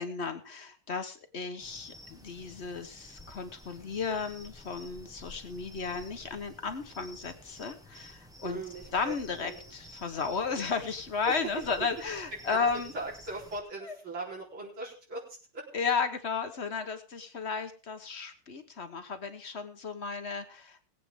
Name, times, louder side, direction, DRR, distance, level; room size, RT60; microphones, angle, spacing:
voice 1, 0.0-8.6 8.9-12.9 13.8-14.0 15.7-20.8, left 5 dB, 40° left, 8 dB, 1.1 m, -34 dB
sound 1, 1.6-13.6, left 1 dB, ahead, 0.9 m, -52 dB
voice 2, 8.4-9.6 11.2-11.4 12.5-12.6 12.9-15.2 15.5-15.6, right 2 dB, 70° right, -5 dB, 4.8 m, -39 dB
20.5 x 8.7 x 3.7 m, 0.37 s
omnidirectional pair, 2.3 m